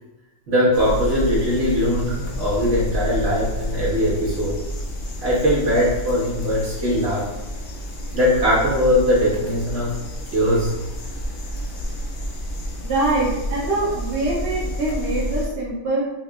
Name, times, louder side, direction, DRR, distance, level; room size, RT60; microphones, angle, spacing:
voice 1, 0.5-4.6 5.2-7.3 8.1-10.0 10.3-10.8, equal, 45° right, -7 dB, 1.4 m, -20 dB
sound 1, 0.7-15.5, equal, 85° left, 0.4 m, -30 dB
voice 2, 12.8-16.0, right 2 dB, 60° right, -6 dB, 0.7 m, -24 dB
4.7 x 2.2 x 2.3 m, 1.0 s
omnidirectional pair, 1.6 m